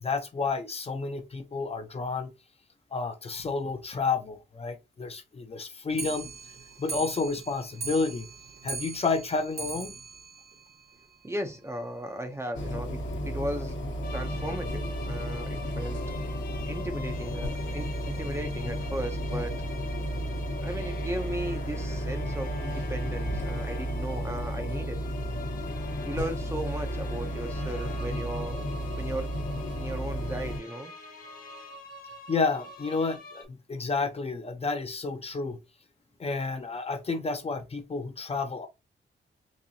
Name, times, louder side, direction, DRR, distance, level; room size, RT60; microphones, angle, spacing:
voice 1, 0.0-2.3 2.9-6.3 6.8-8.3 8.6-9.9 32.3-35.6 36.2-38.7, left 4 dB, 30° left, 0.5 m, -30 dB
Clock, 5.9-11.4 11.7-11.8 12.1-12.2 12.5-12.6 12.9-13.0 13.7-13.8 14.5-14.6 15.3-15.4, right 5 dB, 55° right, 0.7 m, -40 dB
voice 2, 11.2-13.8 14.1-16.0 16.6-19.6 20.6-25.0 26.0-28.6 29.0-29.3 29.7-30.9, right 1 dB, 15° right, 0.5 m, -36 dB
sound 1, 12.5-30.6, equal, 80° left, 1.0 m, -33 dB
sound 2, 14.0-33.4, left 3 dB, 50° left, 0.9 m, -46 dB
4.1 x 2.7 x 2.6 m
wide cardioid pair, 140°, 19 cm